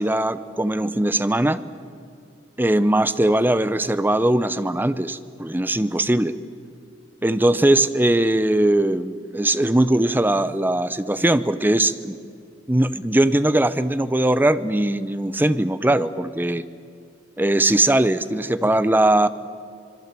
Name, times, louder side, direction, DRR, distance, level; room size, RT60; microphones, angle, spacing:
voice 1, 0.0-1.6 2.6-6.4 7.2-12.2 12.7-16.6 17.4-19.3, right 1 dB, 10° right, 13 dB, 0.7 m, -20 dB
26.5 x 22.0 x 7.6 m, 2.4 s
head